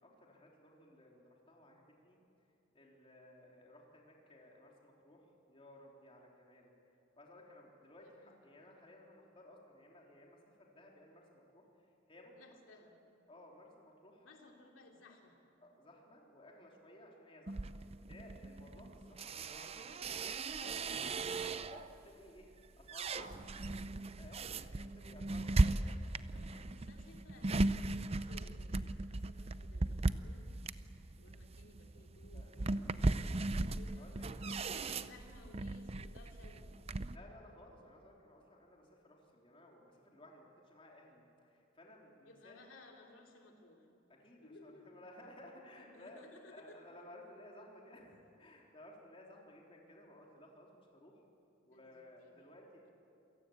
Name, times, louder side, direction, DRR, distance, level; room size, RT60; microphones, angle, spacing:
voice 1, 0.0-2.2 2.7-6.7 7.2-11.6 12.1-12.6 13.3-14.3 15.6-20.1 20.5-22.5 22.8-25.8 26.3-26.7 32.3-33.3 34.0-34.7 37.1-42.6 44.1-51.2 51.7-52.9, left 1 dB, 30° left, -1 dB, 3.7 m, -58 dB
voice 2, 8.0-8.4 12.4-12.9 14.2-15.4 26.7-30.5 31.2-34.1 34.4-37.0 42.2-43.9 44.4-44.9 45.8-46.8 51.7-52.5, left 2 dB, 80° left, 1 dB, 2.9 m, -60 dB
sound 1, 17.5-22.0 22.4-37.2, right 2 dB, 30° right, 0.6 m, -37 dB
28.0 x 17.0 x 8.8 m, 2.6 s
head